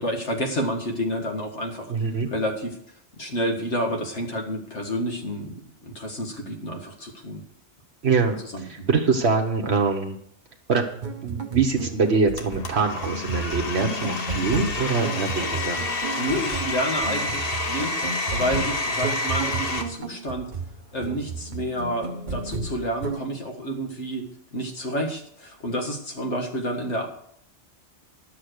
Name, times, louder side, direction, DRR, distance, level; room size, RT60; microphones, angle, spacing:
voice 1, 0.0-1.9 2.3-2.8 3.2-5.6 5.8-7.4 8.5-8.9 16.2-20.5 20.9-24.2 24.5-27.1, equal, 75° left, 2 dB, 2.2 m, -29 dB
voice 2, 1.9-2.3 8.0-10.2 10.7-11.0 11.2-15.8, right 4 dB, 65° right, 3 dB, 1.4 m, -24 dB
sound 1, 10.9-23.3, right 4 dB, 45° right, 1.0 m, -33 dB
Domestic sounds home sounds, 12.4-19.8, left 3 dB, 55° left, 1.3 m, -29 dB
11.5 x 7.6 x 6.5 m, 0.67 s
omnidirectional pair, 1.2 m